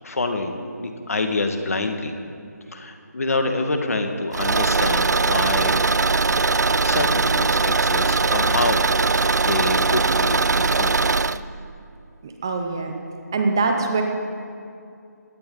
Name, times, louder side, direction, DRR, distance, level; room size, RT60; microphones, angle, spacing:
voice 1, 0.0-2.1 2.7-5.7 6.8-11.2, left 2 dB, 55° left, 5 dB, 1.9 m, -27 dB
Car / Engine, 4.3-11.4, right 4 dB, 70° right, 0.6 m, -20 dB
voice 2, 12.2-13.0 13.3-14.0, right 3 dB, 15° right, 3 dB, 0.6 m, -23 dB
21.0 x 17.0 x 4.0 m, 2.5 s
hypercardioid pair, 175°, 9 cm